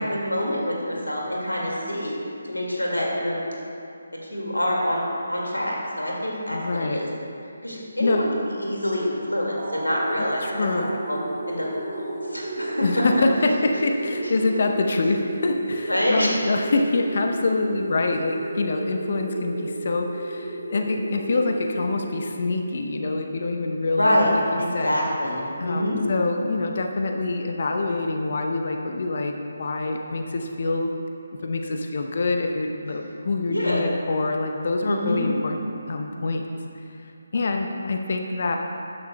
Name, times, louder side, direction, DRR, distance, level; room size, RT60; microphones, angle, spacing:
voice 1, 0.1-2.2 2.4-3.4 4.3-7.1 7.6-8.3 8.6-10.7 11.1-11.2 11.5-11.7 12.0-12.8 15.9-16.4 24.0-24.3 24.6-26.0 33.5-33.8 34.8-35.3, equal, 80° left, -2 dB, 1.9 m, -26 dB
voice 2, 6.5-7.1 8.0-8.3 10.4-10.9 12.8-25.0 25.6-31.0 31.4-35.6 35.9-36.4 37.3-38.6, left 3 dB, 45° left, 3 dB, 0.7 m, -25 dB
sound 1, 9.6-22.8, right 2 dB, 50° right, 2.1 m, -33 dB
14.0 x 10.5 x 2.2 m, 2.6 s
figure-of-eight pair, 150°, 0 cm